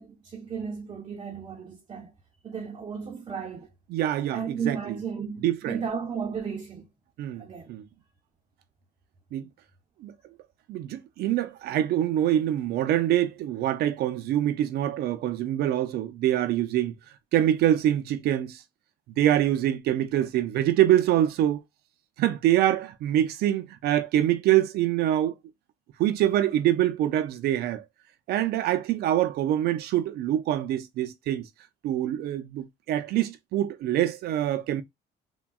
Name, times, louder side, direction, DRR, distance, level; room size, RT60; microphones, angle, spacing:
voice 1, 0.0-2.1 2.4-3.7 4.3-6.9 7.4-7.7, right 6 dB, 30° right, 0.6 m, -34 dB
voice 2, 3.9-5.0 5.4-5.8 7.2-7.8 9.3-9.5 10.0-10.1 10.7-16.9 17.3-18.6 19.2-21.6 22.2-25.3 26.0-27.8 28.3-31.5 31.8-34.8, right 12 dB, 70° right, 0.5 m, -25 dB
3.5 x 2.2 x 2.2 m
cardioid pair, 110°, 17 cm